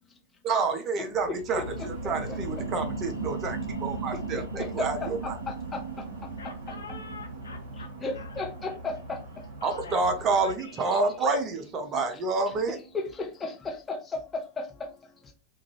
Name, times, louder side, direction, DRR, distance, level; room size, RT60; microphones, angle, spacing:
voice 1, 0.4-5.4 9.6-12.8, right 4 dB, 30° right, 0.5 m, -28 dB
sound 1, 1.1-12.2 12.6-12.7, right 3 dB, 90° right, 0.4 m, -38 dB
voice 2, 1.3-1.6 4.3-4.9 5.5-6.4 8.0-9.5 10.9-11.0 12.9-15.3, left 3 dB, 15° left, 0.8 m, -35 dB
sound 2, 1.5-10.6, right 1 dB, 65° right, 0.8 m, -44 dB
voice 3, 6.4-8.4 9.6-10.0 10.3-11.0, left 3 dB, 70° left, 0.5 m, -45 dB
2.4 x 2.2 x 3.0 m
figure-of-eight pair, 90°, 0 cm